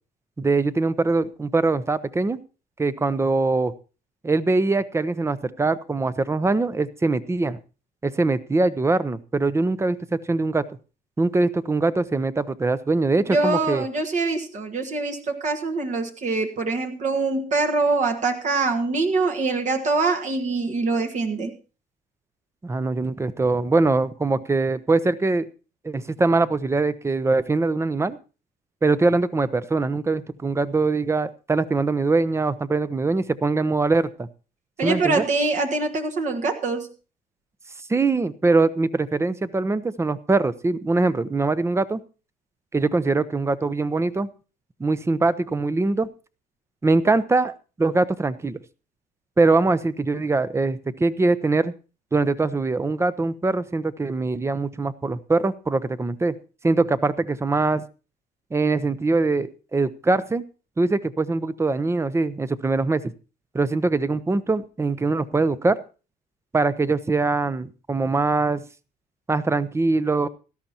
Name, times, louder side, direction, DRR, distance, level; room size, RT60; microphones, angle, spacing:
voice 1, 0.4-2.4 2.8-3.7 4.2-7.6 8.0-10.7 11.2-13.8 22.6-25.5 25.8-28.2 28.8-34.3 34.8-35.2 37.9-42.0 42.7-44.3 44.8-46.1 46.8-48.6 49.4-51.7 52.1-56.4 56.6-57.8 58.5-60.4 60.8-63.1 63.5-65.8 66.5-68.6 69.3-70.3, right 3 dB, 15° right, 16 dB, 0.7 m, -22 dB
voice 2, 13.3-21.5 34.8-36.9, right 3 dB, 45° right, 3 dB, 1.6 m, -24 dB
17.5 x 12.5 x 2.9 m, 0.33 s
cardioid pair, 110°, 17 cm